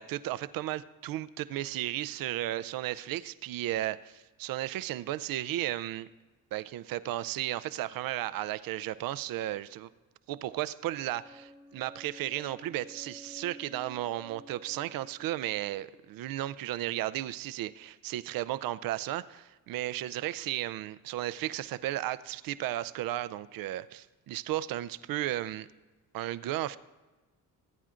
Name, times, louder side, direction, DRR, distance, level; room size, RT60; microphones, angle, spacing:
voice 1, 0.0-6.1 6.5-9.9 10.3-25.7 26.1-26.8, right 14 dB, 65° right, 16 dB, 0.5 m, -34 dB
sound 1, 11.1-16.9, equal, ahead, 0.8 m, -53 dB
19.0 x 9.0 x 2.5 m, 1.2 s
supercardioid pair, 80°, 37 cm